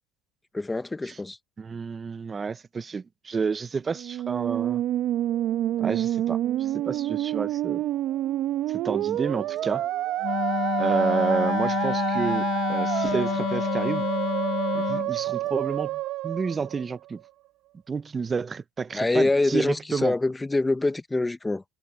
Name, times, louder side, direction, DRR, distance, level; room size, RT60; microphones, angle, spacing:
voice 1, 0.5-1.4 18.9-21.6, left 2 dB, 10° left, 1.0 m, -25 dB
voice 2, 1.6-4.8 5.8-7.8 8.7-9.8 10.8-14.1 14.7-17.2 17.9-20.1, right 5 dB, 20° right, 0.7 m, -30 dB
Musical instrument, 3.9-17.3, right 13 dB, 50° right, 1.0 m, -28 dB
Wind instrument woodwind instrument, 10.2-15.1, left 11 dB, 50° left, 1.0 m, -28 dB
supercardioid pair, 120°, 0 cm